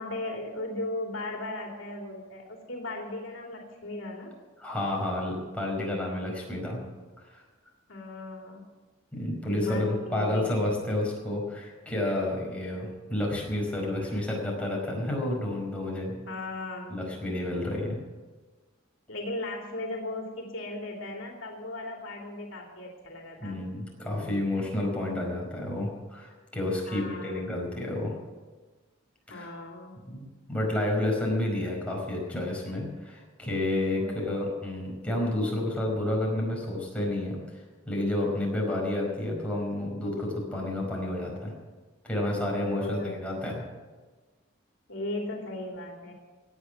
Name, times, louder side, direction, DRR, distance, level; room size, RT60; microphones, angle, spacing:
voice 1, 0.0-4.3 7.9-8.7 9.5-10.7 16.3-17.0 19.1-23.6 26.9-27.4 29.3-29.9 33.8-34.4 42.6-43.4 44.9-46.1, left 2 dB, 70° left, 0 dB, 2.8 m, -37 dB
voice 2, 4.6-6.8 7.3-7.4 9.1-16.2 16.9-18.0 23.4-28.1 29.3-29.5 30.1-41.5 42.0-43.6, left 1 dB, 5° left, -3 dB, 5.0 m, -30 dB
18.0 x 8.6 x 8.2 m, 1.3 s
head